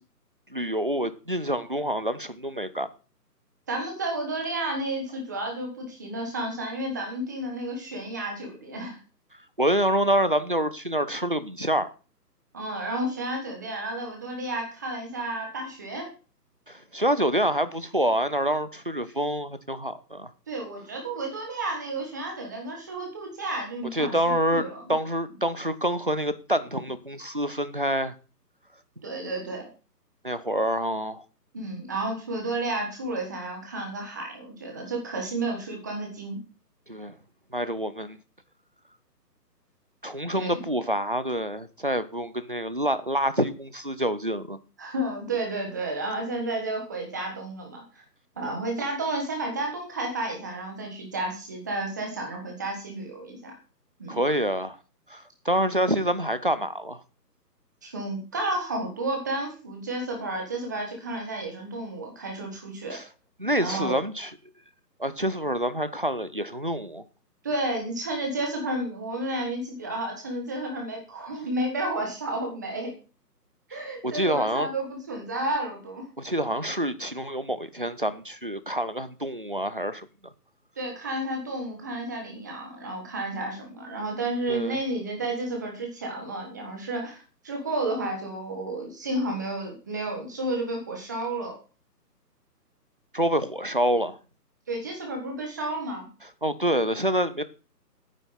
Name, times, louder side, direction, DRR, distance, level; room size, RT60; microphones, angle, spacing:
voice 1, 0.5-2.9 9.6-11.9 16.7-20.3 23.9-24.6 24.9-28.1 30.2-31.2 36.9-37.1 37.5-38.2 40.0-44.6 48.4-48.6 54.1-54.8 55.1-57.0 62.9-63.0 63.4-64.3 65.0-67.0 73.7-74.7 76.2-80.1 84.5-84.8 93.1-94.2 96.4-97.4, equal, 35° right, 0.5 m, -27 dB
voice 2, 3.7-9.0 12.5-16.1 20.5-24.1 24.5-25.0 29.0-29.7 31.5-36.4 40.3-40.7 44.8-48.0 48.4-53.5 54.0-54.2 57.8-63.0 63.6-64.0 67.4-72.9 73.7-76.1 80.8-91.6 94.7-96.1, right 2 dB, 10° right, 1.3 m, -31 dB
9.3 x 8.4 x 5.6 m
hypercardioid pair, 170°, 49 cm